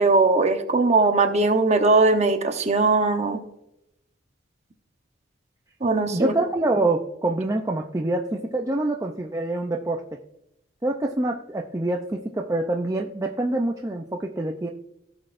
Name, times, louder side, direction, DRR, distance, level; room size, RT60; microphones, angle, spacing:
voice 1, 0.0-3.4 5.8-6.3, right 3 dB, 35° right, 6 dB, 0.9 m, -20 dB
voice 2, 6.1-10.2 10.8-14.7, right 2 dB, 15° right, 1 dB, 0.5 m, -26 dB
17.0 x 6.2 x 2.5 m, 0.83 s
head